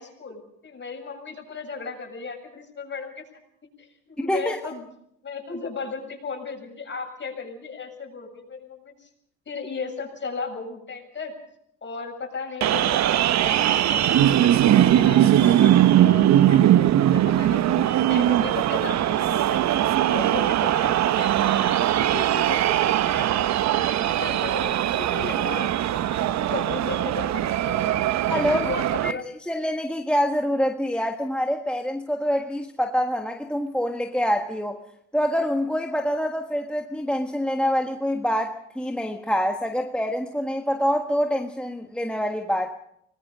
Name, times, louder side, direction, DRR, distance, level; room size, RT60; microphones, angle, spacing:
voice 1, 0.0-3.2 3.8-4.9 5.2-9.1 9.5-11.3 11.8-17.6 18.0-27.8 28.3-29.2, left 4 dB, 35° left, 2 dB, 7.5 m, -36 dB
voice 2, 4.3-4.6 28.2-28.6 29.0-29.1 29.5-34.8 35.1-42.8, equal, 5° left, 3 dB, 1.5 m, -25 dB
sound 1, 12.6-29.1, right 12 dB, 55° right, 0.8 m, -20 dB
25.0 x 20.0 x 5.2 m, 0.73 s
supercardioid pair, 75°, 33 cm